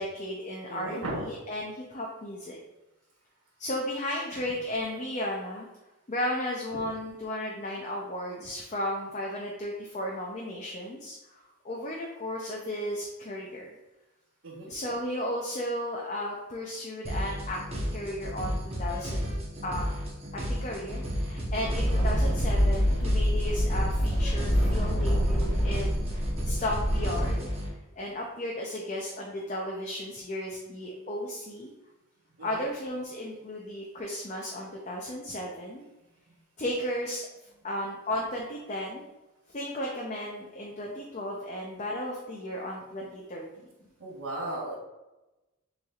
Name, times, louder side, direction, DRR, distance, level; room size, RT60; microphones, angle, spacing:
voice 1, 0.0-2.6 3.6-5.7 6.1-13.7 14.7-19.2 19.6-19.9 20.3-27.5 28.0-31.7 32.4-35.8 36.6-37.3 37.6-39.1 39.5-43.4, left 1 dB, 30° left, -1 dB, 0.5 m, -34 dB
voice 2, 0.7-1.2 6.7-6.8 14.4-14.7 32.4-32.5 44.0-44.7, right 1 dB, 70° right, -7 dB, 1.3 m, -35 dB
sound 1, 17.0-27.7, equal, 25° right, 0.8 m, -33 dB
sound 2, 21.6-27.3, equal, ahead, 1.0 m, -26 dB
6.9 x 3.2 x 2.4 m, 1.0 s
head